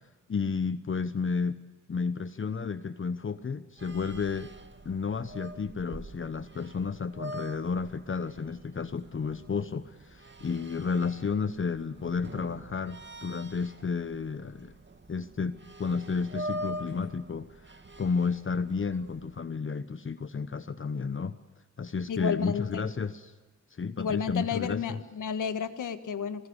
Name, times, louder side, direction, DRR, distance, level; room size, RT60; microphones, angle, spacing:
voice 1, 0.3-1.6 1.9-4.5 4.8-14.7 15.1-21.4 21.8-23.3 23.7-25.0, left 5 dB, 40° left, 12 dB, 1.0 m, -32 dB
sound 1, 3.8-19.4, right 1 dB, 35° right, 2.3 m, -44 dB
voice 2, 22.1-22.9 24.0-26.5, left 7 dB, 85° left, 10 dB, 1.6 m, -32 dB
25.5 x 20.5 x 8.1 m, 1.3 s
cardioid pair, 70°, 30 cm